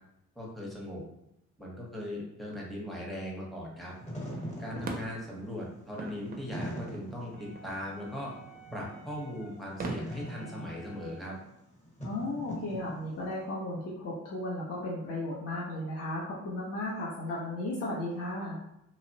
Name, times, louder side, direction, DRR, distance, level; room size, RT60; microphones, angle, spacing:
voice 1, 0.4-1.0 1.6-3.9 4.6-8.3 8.7-11.3, equal, ahead, -4 dB, 0.7 m, -39 dB
Wind / Fire, 3.9-13.4, equal, 20° left, 1.0 m, -42 dB
sound 1, 4.3-10.0, right 3 dB, 30° right, 0.4 m, -43 dB
Wind instrument woodwind instrument, 7.4-11.5, equal, 80° left, 0.8 m, -53 dB
voice 2, 12.0-18.6, left 1 dB, 50° left, -5 dB, 0.6 m, -35 dB
2.9 x 2.0 x 2.6 m, 0.81 s
cardioid pair, 110°, 31 cm